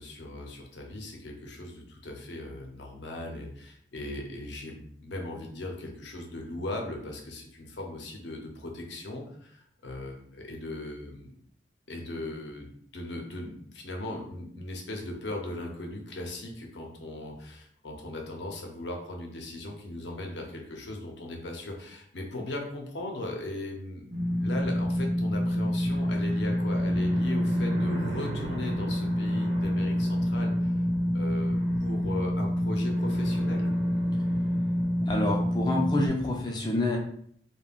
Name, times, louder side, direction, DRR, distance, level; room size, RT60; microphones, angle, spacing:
voice 1, 0.0-11.3 11.9-24.0 24.4-30.7 31.1-33.7, left 1 dB, 75° left, 1 dB, 0.6 m, -38 dB
sound 1, 24.1-36.1, equal, 65° right, 1.0 m, -27 dB
voice 2, 35.1-37.0, left 2 dB, 25° left, 0 dB, 0.4 m, -28 dB
3.4 x 2.2 x 2.3 m, 0.64 s
head